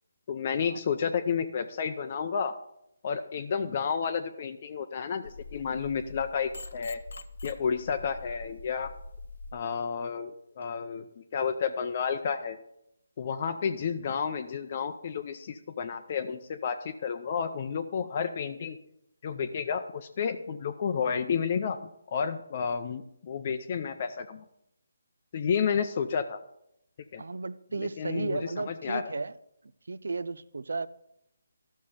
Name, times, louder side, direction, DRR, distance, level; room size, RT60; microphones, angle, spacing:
voice 1, 0.3-2.5 3.0-7.0 7.4-8.9 9.5-12.6 13.2-18.8 19.2-21.8 22.1-24.4 25.3-26.4 27.1-27.2 27.8-29.1, left 6 dB, 35° left, 0.5 m, -31 dB
sound 1, 5.2-9.5, left 3 dB, 70° left, 0.8 m, -44 dB
voice 2, 27.2-29.4 29.9-30.9, right 3 dB, 75° right, 0.5 m, -34 dB
12.5 x 6.4 x 5.6 m
hypercardioid pair, 165°, 0 cm